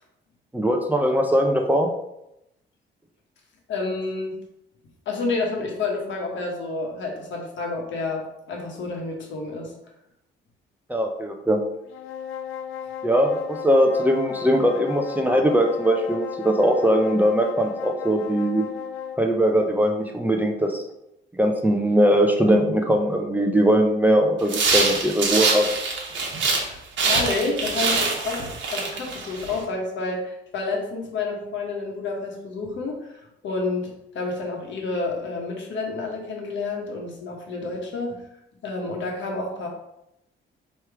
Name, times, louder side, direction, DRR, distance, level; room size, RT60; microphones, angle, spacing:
voice 1, 0.5-1.9 10.9-11.6 13.0-18.6 19.2-20.8 21.4-25.7, equal, 10° right, 2 dB, 0.5 m, -20 dB
voice 2, 3.7-4.3 5.1-9.7 26.6-26.8 27.1-38.2 38.6-39.7, left 3 dB, 70° left, 0 dB, 1.2 m, -29 dB
sound 1, 11.9-19.3, left 8 dB, 90° left, 0.4 m, -35 dB
sound 2, 24.5-26.7 27.0-29.6, right 4 dB, 70° right, 1.1 m, -24 dB
3.3 x 3.1 x 4.6 m, 0.84 s
cardioid pair, 90°, 20 cm